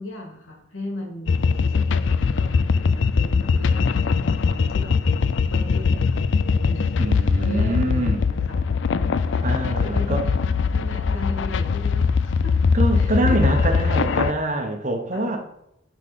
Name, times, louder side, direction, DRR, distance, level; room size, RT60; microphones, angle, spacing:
voice 1, 0.0-5.0 5.5-6.2 6.6-9.4 9.8-10.3 10.7-12.5 12.9-14.2 15.1-15.3, left 1 dB, 90° left, 1 dB, 2.4 m, -37 dB
sound 1, 1.3-14.3, left 5 dB, 65° left, 0.4 m, -21 dB
voice 2, 6.9-8.2 9.4-10.2 12.7-15.4, right 1 dB, 40° right, 4 dB, 1.2 m, -24 dB
11.0 x 4.2 x 5.3 m, 0.80 s
head